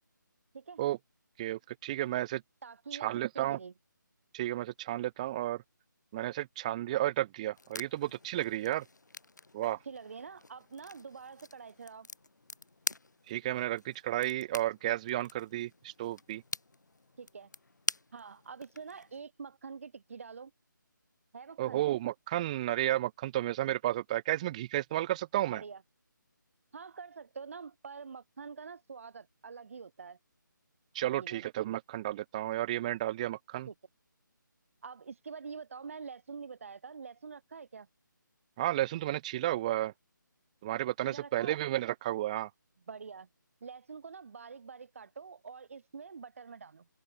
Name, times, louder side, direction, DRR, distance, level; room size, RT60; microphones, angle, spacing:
voice 1, 1.4-2.4 3.0-3.6 4.3-5.6 6.1-8.8 9.5-9.8 13.3-16.4 21.6-25.6 30.9-33.7 38.6-39.9 40.6-42.5, right 14 dB, 20° right, 4.2 m, -32 dB
voice 2, 2.6-3.7 9.6-12.1 17.2-17.5 18.1-20.5 21.3-21.8 25.5-25.8 26.7-30.2 31.0-31.4 33.7-33.8 34.8-37.9 41.0-41.6 42.9-43.3 43.6-46.9, right 5 dB, 40° right, 4.3 m, -46 dB
sound 1, 7.5-19.2, left 3 dB, 60° left, 6.4 m, -45 dB
figure-of-eight pair, 150°, 11 cm